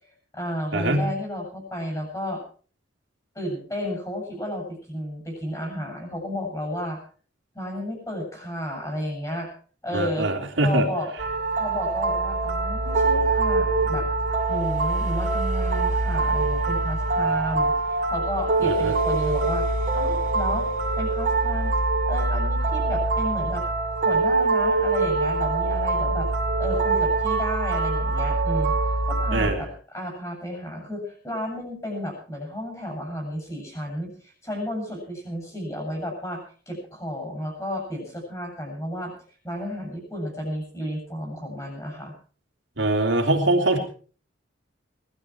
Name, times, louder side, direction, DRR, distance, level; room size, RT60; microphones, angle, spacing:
voice 1, 0.0-2.4 3.3-7.0 7.5-9.5 9.8-10.3 10.6-11.1 11.6-14.1 14.5-19.7 19.9-20.7 21.0-21.7 22.1-23.6 24.0-26.3 26.6-28.7 29.0-39.1 39.4-42.1, left 1 dB, 15° left, 1 dB, 8.0 m, -32 dB
voice 2, 0.7-1.1 9.9-10.9 18.6-18.9 29.3-29.6 42.8-43.8, right 2 dB, 70° right, 2 dB, 3.4 m, -23 dB
sound 1, 11.2-29.5, right 3 dB, 40° right, 4.2 m, -24 dB
20.5 x 12.5 x 4.7 m, 0.42 s
head